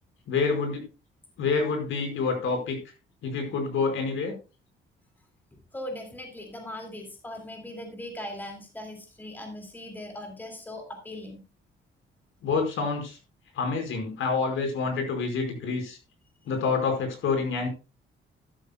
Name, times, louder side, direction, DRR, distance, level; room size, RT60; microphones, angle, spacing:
voice 1, 0.3-0.8 1.4-2.8 3.2-4.3 12.4-13.2 13.5-16.0 16.5-17.7, left 4 dB, 75° left, 4 dB, 4.7 m, -27 dB
voice 2, 5.7-11.4, left 1 dB, 10° left, 3 dB, 2.2 m, -39 dB
12.5 x 12.5 x 2.2 m, 0.30 s
cardioid pair, 170°, 21 cm